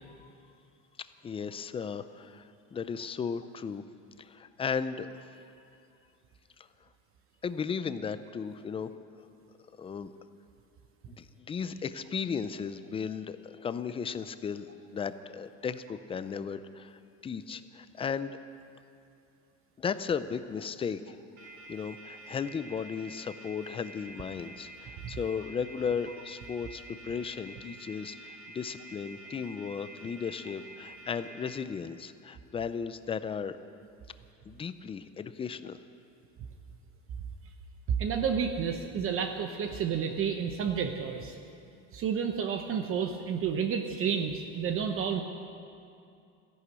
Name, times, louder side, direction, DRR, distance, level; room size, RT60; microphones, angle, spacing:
voice 1, 1.2-3.8 4.2-5.3 6.6-6.7 7.4-8.9 9.8-10.1 11.1-18.4 19.8-21.2 21.7-33.6 34.5-35.8, left 6 dB, 15° left, 12 dB, 0.4 m, -35 dB
sound 1, 21.4-31.5, right 2 dB, 60° right, 4.3 m, -49 dB
voice 2, 38.0-41.4 41.9-45.2, right 7 dB, 40° right, 5 dB, 0.9 m, -30 dB
14.5 x 11.0 x 8.2 m, 2.5 s
cardioid pair, 140°, 35 cm